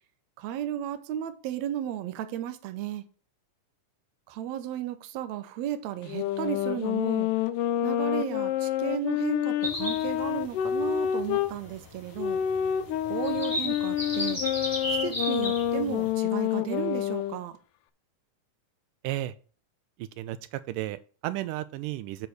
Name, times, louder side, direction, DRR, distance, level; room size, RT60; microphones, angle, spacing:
voice 1, 0.4-3.0 4.3-7.3 7.8-12.4 13.1-14.4 14.9-17.6, right 11 dB, 70° right, 1.9 m, -34 dB
sound 1, 6.1-11.6 12.2-17.4, left 11 dB, 80° left, 2.2 m, -28 dB
sound 2, 9.6-16.1, equal, 5° left, 2.2 m, -35 dB
voice 2, 19.0-19.3 20.0-22.3, right 15 dB, 85° right, 2.2 m, -33 dB
8.0 x 4.1 x 6.6 m
omnidirectional pair, 3.8 m